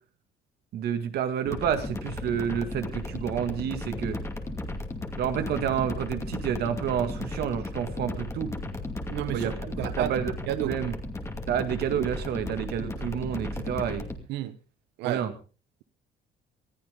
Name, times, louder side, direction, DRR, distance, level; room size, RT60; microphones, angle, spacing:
voice 1, 0.7-4.2 5.2-8.5 9.3-9.5 9.8-10.3 10.6-10.9 11.5-14.0 15.0-15.3, right 9 dB, 70° right, 2.0 m, -29 dB
sound 1, 1.4-14.2, left 2 dB, 15° left, 2.5 m, -35 dB
voice 2, 9.1-10.2 10.5-10.8 14.3-14.6 15.0-15.3, right 14 dB, 90° right, 1.0 m, -32 dB
21.0 x 14.0 x 3.6 m
cardioid pair, 110°, 17 cm